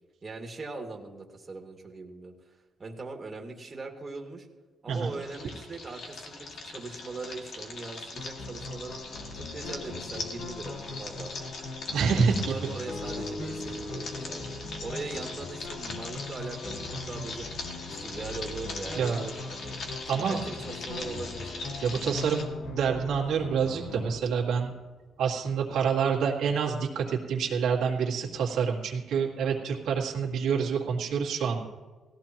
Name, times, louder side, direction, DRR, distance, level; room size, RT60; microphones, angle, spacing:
voice 1, 0.2-2.3 2.8-4.5 4.8-9.0 9.3-11.3 12.2-16.8 17.1-17.5 18.0-19.8 20.0-21.5, right 3 dB, 30° right, 1 dB, 2.1 m, -40 dB
sound 1, 4.9-22.4, left 3 dB, 60° left, 2.1 m, -41 dB
sound 2, 8.2-24.2, left 3 dB, 80° left, 1.5 m, -41 dB
voice 2, 11.9-12.4 19.0-19.2 20.1-20.4 21.8-24.7 25.2-31.7, right 6 dB, 80° right, -2 dB, 2.1 m, -27 dB
sound 3, 12.9-16.2 16.6-20.4 21.0-25.2 25.9-26.0, left 2 dB, 40° left, 1.5 m, -45 dB
17.5 x 14.5 x 3.0 m, 1.3 s
cardioid pair, 90°, 0 cm